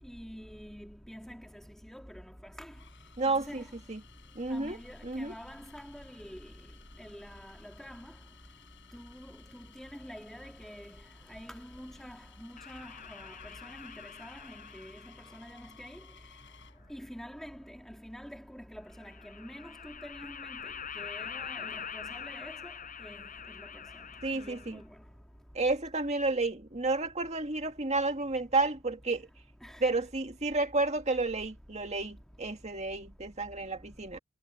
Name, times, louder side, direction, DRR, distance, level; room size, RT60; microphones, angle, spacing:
voice 1, 0.0-2.7 3.3-3.7 4.5-6.5 7.0-8.1 8.9-11.0 11.3-16.0 16.9-22.7 23.0-23.2 23.5-23.8 24.3-24.9 29.6-29.9, equal, ahead, 2.6 m, -47 dB
sound 1, 2.7-16.8, left 7 dB, 60° left, 7.8 m, -58 dB
voice 2, 3.2-3.6 3.9-4.0 4.4-4.8 5.0-5.3 24.2-24.8 25.5-29.3 29.8-34.2, right 3 dB, 30° right, 1.9 m, -31 dB
sound 2, 12.6-15.2 16.3-17.3 18.9-24.9, left 7 dB, 40° left, 6.8 m, -44 dB
head